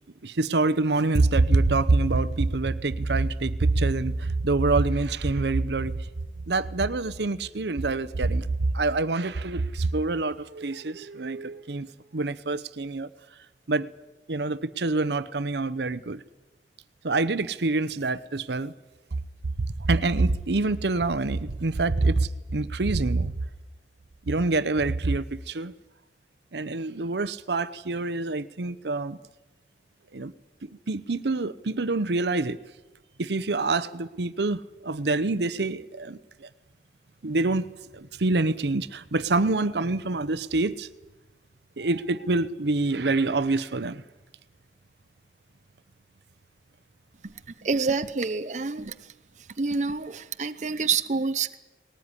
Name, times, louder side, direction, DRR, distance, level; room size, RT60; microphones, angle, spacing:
voice 1, 0.2-6.0 6.5-11.9 12.1-13.1 13.7-13.9 14.3-16.2 17.0-18.7 19.8-23.3 24.3-25.7 26.5-29.2 30.1-30.3 30.9-32.6 33.2-36.5 37.2-37.7 37.9-40.9 41.8-44.0, right 3 dB, 75° right, 0.8 m, -26 dB
voice 2, 47.2-49.1 49.6-51.6, right 4 dB, 40° right, 0.7 m, -28 dB
20.0 x 19.0 x 9.8 m
head